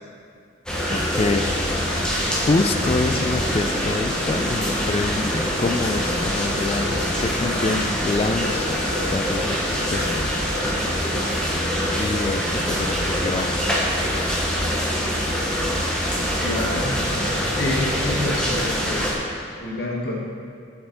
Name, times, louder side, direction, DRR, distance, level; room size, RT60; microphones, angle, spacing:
sound 1, 0.7-19.1, equal, 5° left, 1.1 m, -24 dB
voice 1, 0.9-1.5 2.3-8.8 9.1-10.3 12.0-13.9, left 3 dB, 30° left, 9 dB, 0.3 m, -26 dB
voice 2, 7.4-7.9 16.4-17.0 17.5-19.0 19.6-20.2, left 2 dB, 55° left, -2 dB, 1.3 m, -28 dB
8.0 x 7.8 x 3.9 m, 2.4 s
head